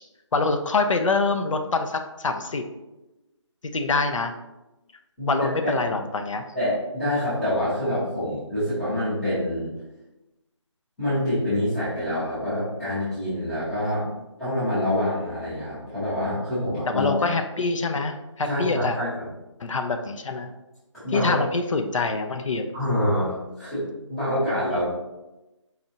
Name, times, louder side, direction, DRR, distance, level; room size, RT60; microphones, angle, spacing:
voice 1, 0.3-2.6 3.7-4.3 5.3-6.5 13.8-14.1 16.9-19.0 19.6-20.5 21.1-22.7, left 3 dB, 85° left, 6 dB, 0.5 m, -25 dB
voice 2, 5.2-5.7 6.5-9.7 11.0-14.0 14.4-17.3 18.4-19.3 20.9-21.4 22.7-23.8 24.1-24.8, left 1 dB, ahead, -17 dB, 0.5 m, -26 dB
4.2 x 2.4 x 2.7 m, 1.0 s
figure-of-eight pair, 165°, 16 cm